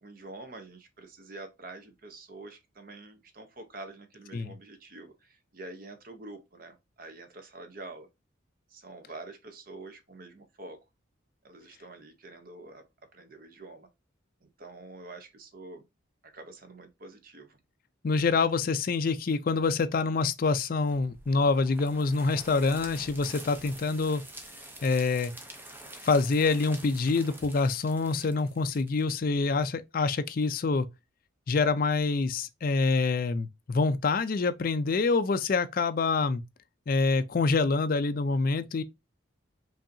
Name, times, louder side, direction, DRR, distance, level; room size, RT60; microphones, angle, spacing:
voice 1, 0.0-8.1 8.7-10.8 11.4-12.8 13.1-13.9 14.4-15.8 16.3-17.6 28.2-28.3, right 2 dB, 45° right, 0.7 m, -46 dB
voice 2, 18.0-24.2 24.8-25.3 26.0-30.9 31.5-36.4 36.9-38.8, left 4 dB, 45° left, 0.4 m, -26 dB
sound 1, 20.8-29.6, right 1 dB, 10° right, 0.6 m, -47 dB
5.1 x 2.7 x 2.6 m
head